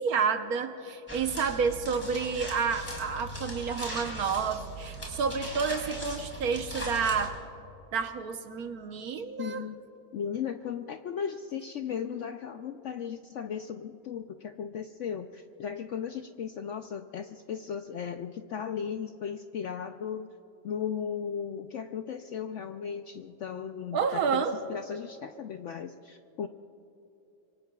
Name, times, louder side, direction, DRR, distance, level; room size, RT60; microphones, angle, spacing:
voice 1, 0.0-7.4 7.9-9.6 23.9-24.6, right 5 dB, 65° right, 7 dB, 1.3 m, -30 dB
sound 1, 1.1-7.3, right 1 dB, 10° left, 3.6 m, -39 dB
voice 2, 9.4-9.8 10.1-20.3 20.6-26.5, left 7 dB, 70° left, 7 dB, 0.7 m, -36 dB
26.0 x 23.5 x 2.3 m, 2.9 s
omnidirectional pair, 1.7 m